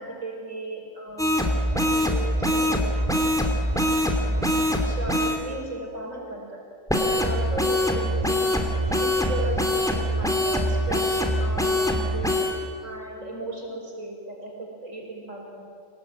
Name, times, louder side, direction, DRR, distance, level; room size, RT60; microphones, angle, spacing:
voice 1, 0.0-3.1 3.8-4.5 4.8-6.6 7.0-12.5 12.8-15.6, right 1 dB, 80° right, 0 dB, 5.7 m, -36 dB
sound 1, 1.2-5.4 6.9-12.5, equal, 5° left, 2.6 m, -23 dB
26.5 x 18.0 x 8.9 m, 2.2 s
omnidirectional pair, 1.3 m